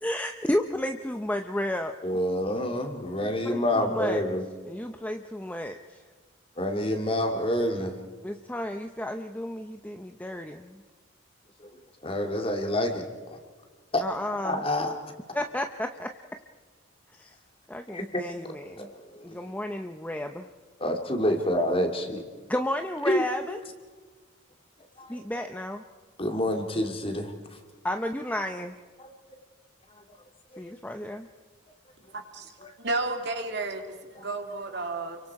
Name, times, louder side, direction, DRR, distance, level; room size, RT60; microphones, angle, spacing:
voice 1, 0.0-1.9 3.2-4.2 4.7-6.0 8.2-10.8 14.0-14.6 15.3-16.1 17.7-18.9 19.2-20.5 22.5-23.6 25.1-25.8 27.8-28.7 30.6-31.3, left 1 dB, 5° left, 5 dB, 0.7 m, -32 dB
voice 2, 2.0-4.4 6.6-7.9 12.0-13.0 13.9-14.0 14.4-14.9 17.9-18.2 18.8-18.9 19.2-19.5 20.8-22.2 23.1-23.2 25.0-25.2 26.2-27.3 29.0-29.1 30.5-30.8 32.6-32.7 34.2-34.3, left 1 dB, 25° left, 4 dB, 2.4 m, -27 dB
voice 3, 32.1-32.5 32.8-33.8 34.1-35.2, right 2 dB, 55° right, 4 dB, 2.7 m, -31 dB
29.0 x 24.0 x 4.8 m, 1.5 s
head